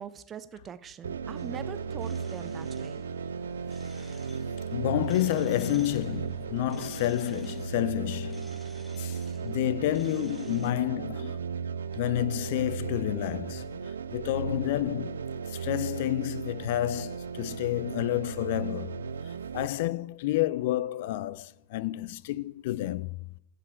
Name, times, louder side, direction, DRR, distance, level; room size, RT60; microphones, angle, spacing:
voice 1, 0.0-3.0, right 7 dB, 25° right, 0.8 m, -42 dB
sound 1, 1.0-19.7, right 6 dB, 70° right, 0.5 m, -36 dB
sound 2, 1.4-10.7, left 1 dB, 5° left, 1.2 m, -53 dB
voice 2, 4.7-8.5 9.0-11.4 11.9-15.2 15.5-23.2, left 14 dB, 50° left, 0.4 m, -30 dB
15.0 x 5.1 x 8.4 m
figure-of-eight pair, 90°, 0 cm